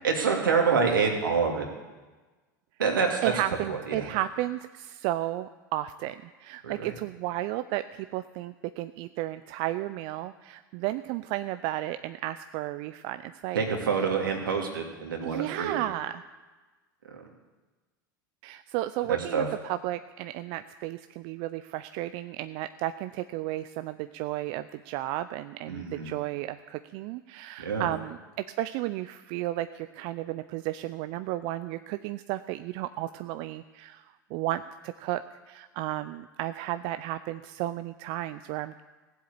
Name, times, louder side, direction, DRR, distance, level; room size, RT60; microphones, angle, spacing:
voice 1, 0.0-1.7 2.8-3.3 3.7-4.2 6.6-6.9 13.5-15.8 17.1-17.2 19.1-19.5 25.7-26.1 27.6-27.9, right 5 dB, 85° right, 1 dB, 2.6 m, -27 dB
voice 2, 3.2-13.6 15.2-16.2 18.4-38.8, right 15 dB, 55° right, 11 dB, 0.5 m, -33 dB
16.0 x 8.0 x 8.3 m, 1.2 s
hypercardioid pair, 85°, 11 cm